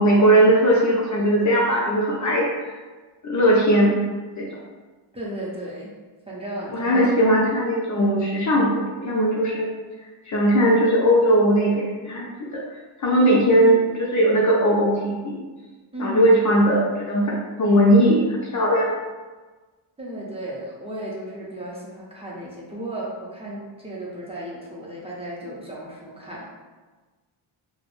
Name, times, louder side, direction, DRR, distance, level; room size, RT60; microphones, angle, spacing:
voice 1, 0.0-2.5 3.2-4.0 4.4-4.5 6.7-9.7 10.3-12.6 13.0-15.4 16.0-18.9, right 1 dB, 40° left, -3 dB, 0.4 m, -19 dB
voice 2, 5.1-5.9 6.3-7.1 15.9-16.5 20.0-26.5, right 1 dB, 10° right, -6 dB, 0.5 m, -34 dB
2.2 x 2.0 x 3.0 m, 1.3 s
cardioid pair, 85°, 50 cm